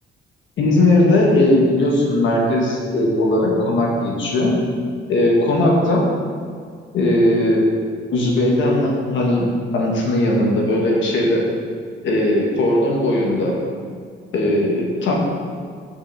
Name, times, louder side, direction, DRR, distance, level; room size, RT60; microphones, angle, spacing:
voice 1, 0.6-4.5 5.1-6.0 6.9-7.7 8.1-9.5 9.7-11.4 12.0-13.5 14.3-15.2, left 1 dB, 70° left, -2 dB, 1.5 m, -18 dB
5.7 x 5.4 x 5.6 m, 2.1 s
cardioid pair, 90°, 20 cm